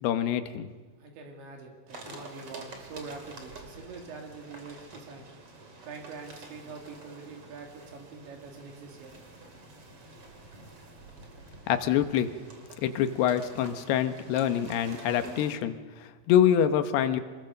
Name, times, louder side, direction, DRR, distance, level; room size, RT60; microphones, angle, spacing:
voice 1, 0.0-0.7 2.1-2.2 11.7-12.3 12.8-17.2, left 10 dB, 75° left, 9 dB, 2.9 m, -26 dB
voice 2, 1.0-5.2 5.8-9.1, right 4 dB, 90° right, 2 dB, 5.0 m, -44 dB
sound 1, 1.9-15.5, right 2 dB, 35° right, 3.0 m, -48 dB
26.0 x 20.5 x 6.6 m, 1.4 s
omnidirectional pair, 5.1 m